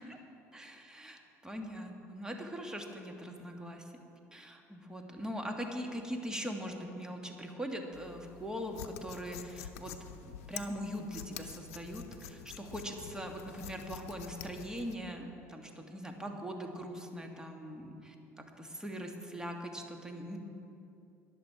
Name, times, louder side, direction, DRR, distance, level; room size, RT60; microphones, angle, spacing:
voice 1, 0.5-3.9 4.3-9.9 10.2-20.4, equal, 10° right, 3 dB, 1.9 m, -41 dB
sound 1, 7.9-14.9, left 9 dB, 70° left, 0.7 m, -47 dB
21.5 x 7.3 x 4.8 m, 2.7 s
figure-of-eight pair, 65°, 8 cm